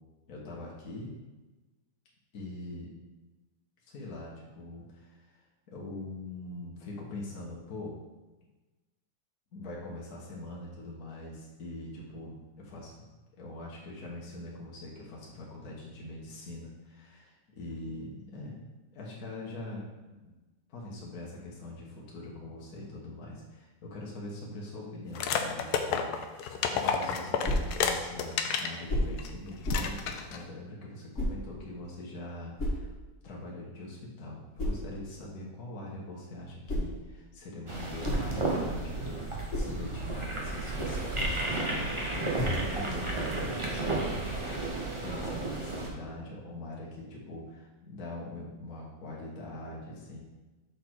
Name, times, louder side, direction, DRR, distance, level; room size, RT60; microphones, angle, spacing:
voice 1, 0.3-1.1 2.3-2.9 3.8-8.0 9.5-18.6 18.9-20.4 20.7-32.9 33.2-50.2, left 2 dB, 55° left, -4 dB, 1.6 m, -43 dB
sound 1, 25.1-28.8 29.2-29.3 29.7-30.4, left 7 dB, 70° left, 1.0 m, -30 dB
sound 2, 27.4-27.8 28.9-29.2 29.6-29.9 31.1-31.4 32.6-32.9 34.6-34.9 36.4-37.0 37.8-38.7 39.2-39.8 41.0-41.5 42.3-42.7, left 1 dB, 40° left, 2.0 m, -32 dB
sound 3, 37.7-45.9, right 2 dB, 35° right, 0.5 m, -33 dB
6.4 x 4.0 x 4.5 m, 1.2 s
omnidirectional pair, 2.0 m